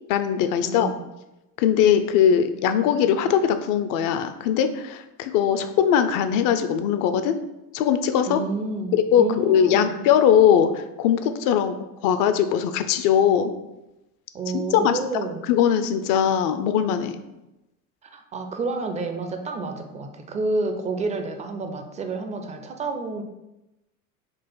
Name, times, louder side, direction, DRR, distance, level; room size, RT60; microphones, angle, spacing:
voice 1, 0.1-0.9 1.6-7.4 7.7-8.4 9.1-11.7 12.0-13.5 14.5-17.2, left 8 dB, 50° left, 9 dB, 0.5 m, -20 dB
voice 2, 0.6-1.0 8.3-9.9 14.3-15.4 18.1-23.2, right 3 dB, 15° right, 6 dB, 0.4 m, -29 dB
4.0 x 2.5 x 3.9 m, 0.95 s
hypercardioid pair, 80°, 44 cm